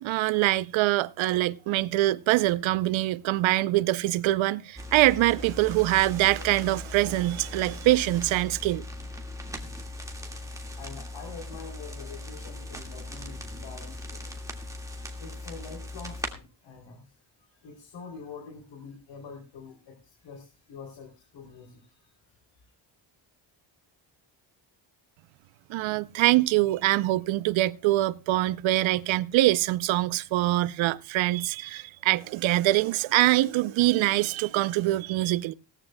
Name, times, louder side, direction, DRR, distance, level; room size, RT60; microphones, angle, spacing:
voice 1, 0.0-8.8 25.7-35.5, right 17 dB, 90° right, 0.7 m, -24 dB
sound 1, 4.8-16.3, left 1 dB, 5° right, 1.9 m, -39 dB
voice 2, 10.7-14.4 15.2-17.2 17.5-22.2 22.5-22.7, left 5 dB, 70° left, 3.2 m, -45 dB
18.5 x 14.0 x 2.2 m
cardioid pair, 135°, 45 cm